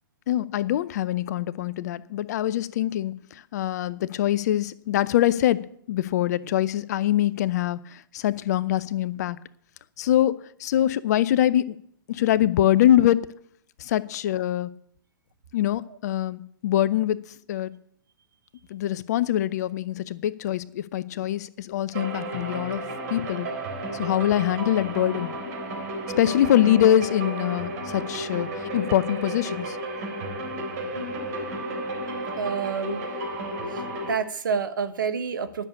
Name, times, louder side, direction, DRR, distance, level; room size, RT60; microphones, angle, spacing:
voice 1, 0.3-9.4 10.0-11.8 12.1-13.2 13.8-14.7 15.5-17.2 17.5-17.7 18.7-23.5 23.9-25.3 26.2-29.8, left 12 dB, 50° left, 17 dB, 0.6 m, -24 dB
sound 1, 21.9-34.1, right 1 dB, 50° right, 3.9 m, -32 dB
voice 2, 32.4-33.0 34.1-35.6, right 6 dB, 70° right, 10 dB, 1.2 m, -28 dB
10.5 x 6.7 x 8.5 m, 0.65 s
figure-of-eight pair, 115°, 11 cm